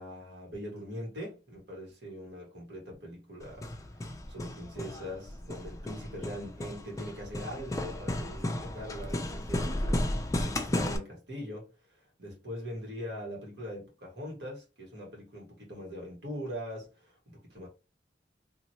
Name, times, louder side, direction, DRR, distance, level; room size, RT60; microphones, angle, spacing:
voice 1, 0.0-3.7 4.3-10.0 10.4-17.7, equal, 70° right, 1.5 m, -42 dB
Hammer, 3.4-11.0, left 1 dB, 20° left, 0.3 m, -34 dB
2.9 x 2.5 x 2.8 m
head